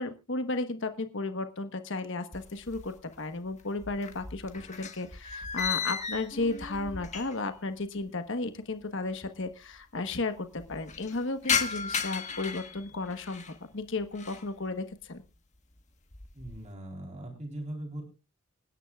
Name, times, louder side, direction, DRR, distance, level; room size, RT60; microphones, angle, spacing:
voice 1, 0.0-15.2, left 3 dB, 60° left, 8 dB, 1.3 m, -34 dB
sound 1, 2.3-3.2 3.5-7.6 7.9-8.0 8.8-8.9 9.1-9.2 9.5-10.0 10.4-13.6 14.0-14.5 15.0-15.4 15.8-16.7, left 6 dB, 35° left, 1.4 m, -35 dB
voice 2, 16.3-18.0, right 1 dB, 35° right, 1 dB, 3.8 m, -40 dB
26.5 x 10.0 x 2.4 m, 0.29 s
head